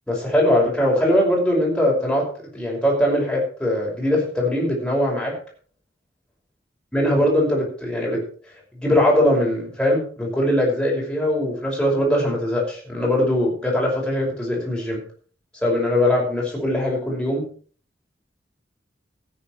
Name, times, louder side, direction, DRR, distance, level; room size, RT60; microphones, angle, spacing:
voice 1, 0.1-2.2 2.5-5.3 6.9-8.2 8.7-15.0 15.6-17.4, left 1 dB, 5° left, -3 dB, 5.4 m, -21 dB
16.0 x 9.3 x 4.5 m, 0.43 s
head